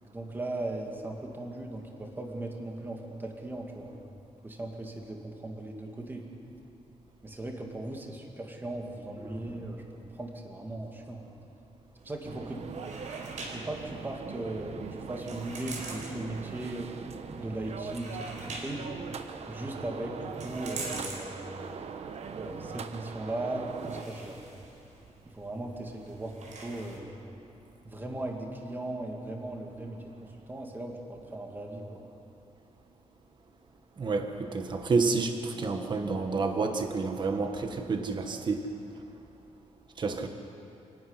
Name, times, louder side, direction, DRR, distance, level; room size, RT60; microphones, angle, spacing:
voice 1, 0.0-3.9 4.4-6.3 7.2-9.8 10.1-11.2 12.0-12.6 13.4-14.8 15.1-16.9 17.2-18.9 19.5-21.7 22.4-24.4 25.3-26.3 26.6-27.1 27.8-30.0 30.5-32.1, right 1 dB, 15° right, 1 dB, 2.2 m, -38 dB
sound 1, 12.0-27.0, right 3 dB, 80° right, 4.5 m, -46 dB
sound 2, 12.2-24.0, right 6 dB, 60° right, 1.0 m, -41 dB
voice 2, 34.0-38.6 40.0-40.3, right 4 dB, 40° right, 5 dB, 1.3 m, -29 dB
27.0 x 12.0 x 9.8 m, 2.8 s
wide cardioid pair, 160°, 12 cm